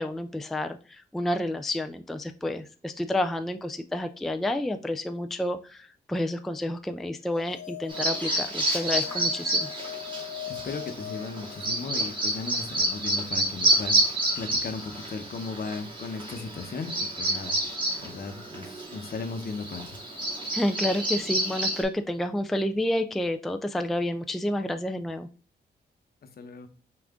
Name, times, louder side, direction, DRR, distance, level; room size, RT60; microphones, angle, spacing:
voice 1, 0.0-9.7 20.5-25.3, left 1 dB, ahead, 8 dB, 0.3 m, -30 dB
sound 1, 7.3-12.1, left 13 dB, 90° left, 0.9 m, -41 dB
Bird vocalization bird call bird song, 7.9-21.8, right 1 dB, 25° right, 2.1 m, -29 dB
voice 2, 10.5-14.0 14.4-17.6 18.0-20.0 26.4-26.7, left 4 dB, 60° left, 7 dB, 0.9 m, -36 dB
5.7 x 2.5 x 3.6 m, 0.39 s
cardioid pair, 90°, 18 cm